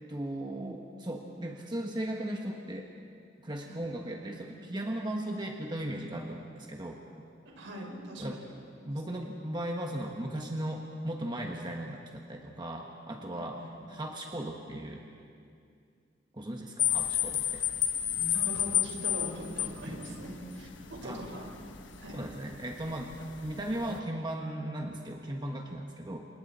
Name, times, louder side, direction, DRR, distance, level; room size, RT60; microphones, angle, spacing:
voice 1, 0.1-2.9 3.4-7.0 8.2-8.4 8.8-13.6 13.9-15.0 16.3-17.6 21.0-21.2 22.1-26.3, right 1 dB, 25° right, 1 dB, 1.3 m, -37 dB
voice 2, 7.4-8.4 8.8-9.2 13.3-13.7 18.1-21.5 22.0-22.2, equal, 75° right, 0 dB, 4.7 m, -41 dB
sound 1, 16.8-24.0, left 11 dB, 70° left, 1.3 m, -33 dB
29.5 x 27.5 x 4.2 m, 2.4 s
head